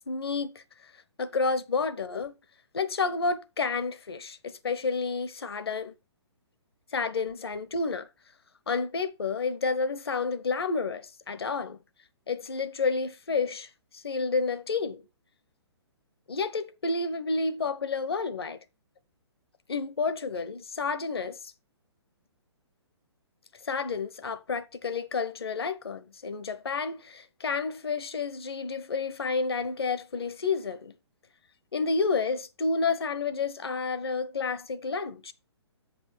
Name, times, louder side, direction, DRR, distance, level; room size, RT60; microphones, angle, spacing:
voice 1, 0.1-0.6 1.2-2.3 2.7-5.9 6.9-8.1 8.7-11.8 12.3-15.0 16.3-18.6 19.7-21.4 23.6-30.9 31.7-35.3, left 4 dB, 60° left, 0.9 m, -30 dB
8.1 x 5.3 x 4.4 m
figure-of-eight pair, 125°, 14 cm